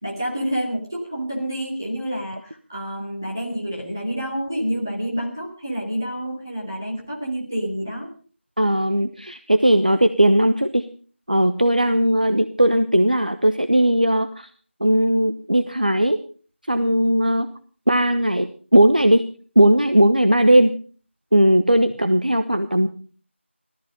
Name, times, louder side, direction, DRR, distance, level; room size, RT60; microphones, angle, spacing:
voice 1, 0.0-8.1, equal, 15° right, -4 dB, 3.1 m, -28 dB
voice 2, 8.6-10.9 11.3-14.5 14.8-16.2 16.7-17.5 17.9-19.3 19.6-20.8 21.3-22.9, right 1 dB, 40° right, 9 dB, 1.0 m, -18 dB
18.5 x 13.5 x 5.2 m, 0.41 s
figure-of-eight pair, 180°, 7 cm